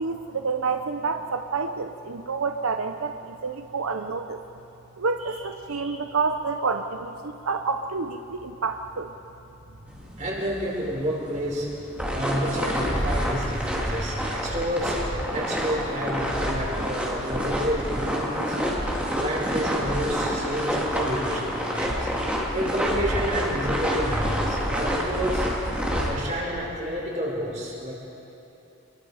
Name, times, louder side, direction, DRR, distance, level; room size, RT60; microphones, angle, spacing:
voice 1, 0.0-4.4 5.0-9.1, right 4 dB, 85° right, 7 dB, 0.8 m, -28 dB
sound 1, 9.9-26.1, equal, 5° right, 2.8 m, -28 dB
voice 2, 10.2-11.7 12.1-18.6 19.2-22.1 22.5-25.5 26.0-27.9, equal, 35° right, -3 dB, 5.2 m, -30 dB
28.5 x 22.5 x 5.0 m, 3.0 s
head